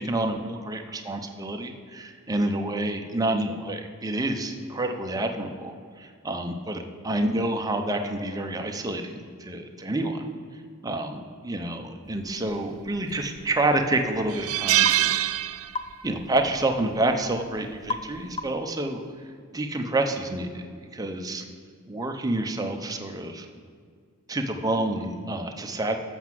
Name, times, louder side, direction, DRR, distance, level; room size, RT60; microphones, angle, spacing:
voice 1, 0.0-10.2 10.8-15.2 16.0-19.0 19.5-20.6 20.9-21.4 21.9-23.5 24.3-26.0, right 2 dB, 15° right, 4 dB, 0.7 m, -28 dB
sound 1, 12.9-13.4 13.8-13.9 14.3-16.1 16.4-16.6 17.9-18.2, right 14 dB, 80° right, 0.4 m, -24 dB
sound 2, 14.9-15.0 15.7-16.0 17.9-18.1 18.4-18.7, left 3 dB, 25° left, 0.4 m, -32 dB
7.8 x 6.0 x 7.4 m, 2.1 s
head